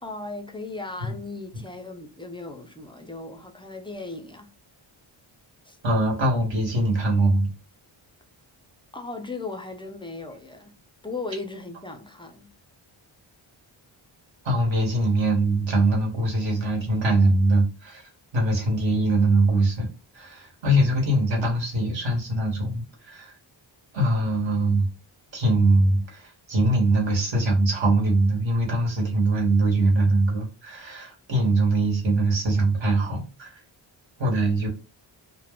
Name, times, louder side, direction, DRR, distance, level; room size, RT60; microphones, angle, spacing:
voice 1, 0.0-4.5 5.7-5.8 8.9-10.7 11.0-12.5, left 3 dB, 10° left, 0.4 m, -37 dB
voice 2, 5.8-7.5 14.4-19.9 20.1-23.3 23.9-24.9 25.3-33.5 34.2-34.7, right 2 dB, 65° right, 1.2 m, -22 dB
2.3 x 2.1 x 3.6 m
wide cardioid pair, 85°, 49 cm